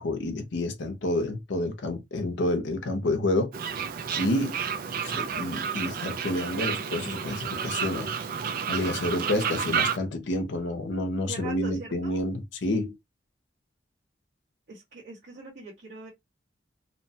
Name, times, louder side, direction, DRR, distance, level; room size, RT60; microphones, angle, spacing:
voice 1, 0.0-3.5 4.2-4.6 5.0-8.1 8.7-13.0, left 1 dB, 70° left, 0.6 m, -29 dB
Fowl, 3.5-10.0, right 7 dB, 50° right, 0.4 m, -31 dB
voice 2, 11.3-12.2 14.7-16.1, right 3 dB, 65° right, 1.3 m, -42 dB
2.8 x 2.1 x 2.7 m
head